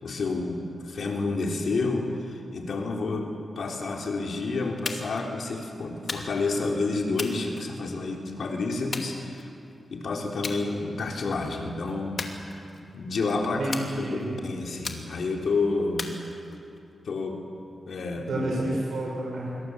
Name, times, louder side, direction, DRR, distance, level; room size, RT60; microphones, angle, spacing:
voice 1, 0.0-9.5 9.9-12.7 12.9-14.0 14.4-16.1 17.1-17.4 17.9-18.4, left 3 dB, 75° left, 1 dB, 3.7 m, -29 dB
sound 1, 4.9-5.3 6.1-6.6 7.2-8.1 8.9-9.7 10.4-10.6 11.0-11.4 12.2-13.0 13.7-14.3 14.8-15.4 16.0-16.8, left 4 dB, 55° left, 2.6 m, -37 dB
voice 2, 13.6-14.3 18.2-19.6, right 1 dB, 80° right, -4 dB, 7.3 m, -30 dB
26.5 x 23.5 x 8.0 m, 2.7 s
wide cardioid pair, 85°, 0 cm